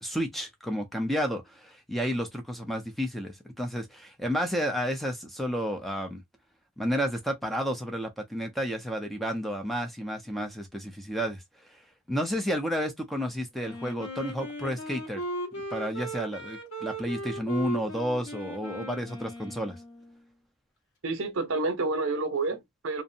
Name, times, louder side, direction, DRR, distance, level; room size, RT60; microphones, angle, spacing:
voice 1, 0.0-6.2 6.8-11.4 11.7-11.8 12.1-15.2 15.7-19.8, equal, ahead, 0.4 m, -31 dB
Wind instrument woodwind instrument, 13.6-20.2, right 1 dB, 80° left, 1.2 m, -38 dB
voice 2, 21.0-23.0, right 3 dB, 65° right, 0.7 m, -29 dB
2.5 x 2.1 x 2.6 m
head